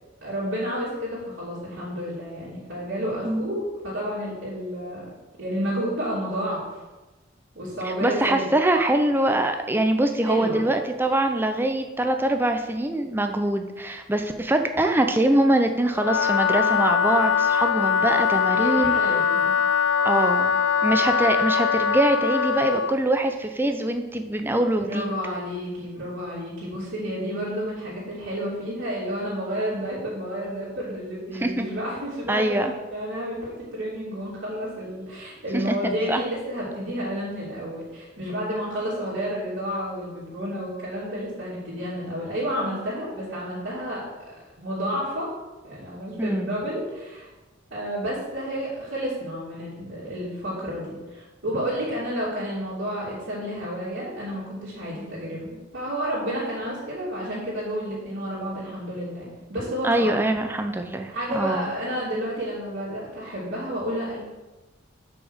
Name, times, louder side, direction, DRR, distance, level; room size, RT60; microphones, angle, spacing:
voice 1, 0.2-5.0 5.4-6.8 7.5-8.5 10.2-10.7 17.8-17.9 18.5-19.5 24.8-44.0 44.6-45.3 45.6-47.3 47.7-60.1 61.1-64.2, equal, 70° right, -10 dB, 2.9 m, -30 dB
voice 2, 7.8-19.0 20.0-20.5 20.8-25.1 31.4-31.7 32.3-32.7 35.5-36.2 46.2-46.5 59.8-61.7, right 1 dB, 10° right, 6 dB, 0.6 m, -23 dB
Wind instrument woodwind instrument, 15.9-23.0, left 7 dB, 90° left, 0.4 m, -22 dB
6.1 x 6.0 x 6.3 m, 1.1 s
head